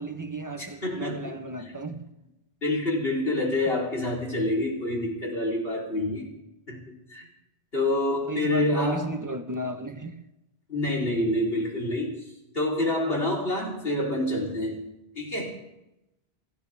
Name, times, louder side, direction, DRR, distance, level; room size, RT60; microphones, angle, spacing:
voice 1, 0.0-2.0 3.7-3.8 8.3-10.1, right 2 dB, 20° right, 1.2 m, -34 dB
voice 2, 0.6-1.7 2.6-6.3 6.7-7.3 7.7-9.1 10.7-12.2 12.5-14.8 15.2-15.5, left 1 dB, 65° left, 4.1 m, -27 dB
29.0 x 12.0 x 3.6 m
omnidirectional pair, 1.1 m